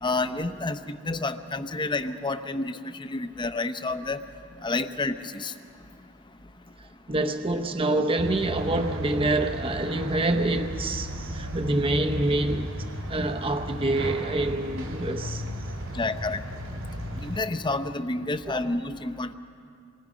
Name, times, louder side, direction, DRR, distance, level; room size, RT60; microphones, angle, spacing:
voice 1, 0.0-4.2 4.6-5.5 15.9-16.4 17.2-19.3, left 2 dB, 20° left, 0.7 m, -29 dB
voice 2, 6.8-15.4 18.5-18.6, right 2 dB, 25° right, 0.8 m, -27 dB
sound 1, 8.2-17.4, equal, 80° right, 3.3 m, -35 dB
28.0 x 23.0 x 5.1 m
head